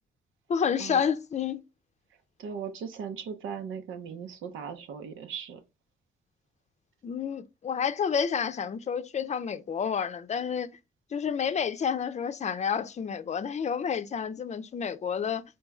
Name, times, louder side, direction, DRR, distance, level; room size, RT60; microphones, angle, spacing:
voice 1, 0.5-1.6 7.0-10.8 11.1-15.4, left 7 dB, 35° left, 0.6 m, -29 dB
voice 2, 2.4-5.6, right 7 dB, 85° right, 0.9 m, -38 dB
4.5 x 3.1 x 3.5 m
cardioid pair, 90°, 20 cm